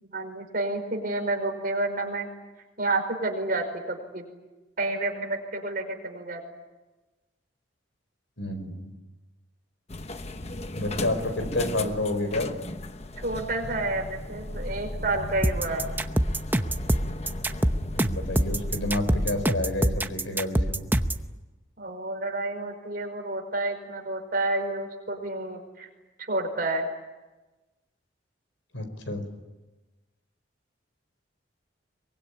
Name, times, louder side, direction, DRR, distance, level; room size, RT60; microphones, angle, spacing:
voice 1, 0.0-2.3 2.8-4.3 4.8-6.4 13.2-15.8 21.8-25.9 26.3-26.9, right 2 dB, 45° right, 3 dB, 5.3 m, -30 dB
voice 2, 8.4-8.9 10.7-12.5 17.9-20.9 28.7-29.2, left 2 dB, 75° left, 8 dB, 4.8 m, -29 dB
sound 1, 9.9-19.5, left 1 dB, 35° left, 1.0 m, -36 dB
sound 2, 15.4-21.3, right 1 dB, 10° right, 0.8 m, -25 dB
24.0 x 22.5 x 10.0 m, 1.1 s
head